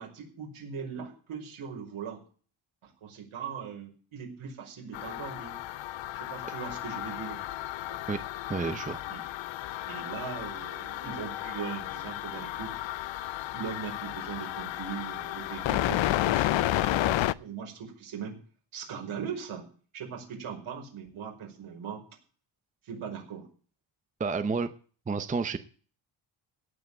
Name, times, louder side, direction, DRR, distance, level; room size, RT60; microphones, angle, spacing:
voice 1, 0.0-2.2 2.8-5.6 6.1-7.4 7.9-8.0 9.1-9.2 9.9-12.7 13.5-18.4 18.7-19.6 19.9-22.0 22.8-23.4, right 7 dB, 75° right, 0 dB, 5.4 m, -40 dB
sound 1, 4.9-17.3, left 14 dB, 65° left, 0.6 m, -32 dB
voice 2, 8.5-9.0 24.2-24.7 25.1-25.6, right 4 dB, 15° right, 11 dB, 0.6 m, -30 dB
17.0 x 5.7 x 8.5 m, 0.41 s
wide cardioid pair, 155°, 49 cm